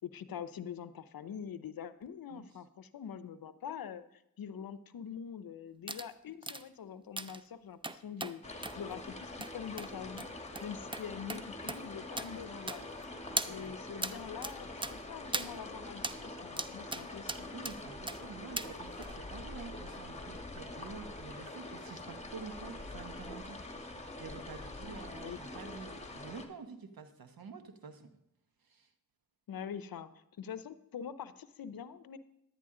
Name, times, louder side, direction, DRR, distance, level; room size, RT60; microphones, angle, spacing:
voice 1, 0.0-10.3 10.6-13.0 13.5-17.5 25.1-25.4 29.5-32.2, left 8 dB, 75° left, 14 dB, 0.7 m, -44 dB
sound 1, 5.9-6.1 6.4-6.6 7.2-7.4 7.8-8.3 8.6-8.8 9.4-9.5 9.8-9.9 10.2-10.3 10.6-10.7 10.9-11.0 11.3-11.4 11.7-11.8 12.2-12.3 12.7-13.0 13.4-13.5 14.0-14.1 14.4-14.5 14.8-14.9 15.3-15.5 16.0-16.2 16.6-17.0 17.3-17.8 18.1-18.2 18.6-18.7 19.0-19.1, right 2 dB, 15° right, 0.5 m, -37 dB
sound 2, 8.4-26.5, left 2 dB, 20° left, 1.4 m, -45 dB
voice 2, 13.3-13.8 17.5-28.1 28.6-28.9, right 5 dB, 75° right, 8 dB, 1.1 m, -49 dB
10.5 x 9.9 x 3.7 m, 0.80 s
cardioid pair, 40°, 36 cm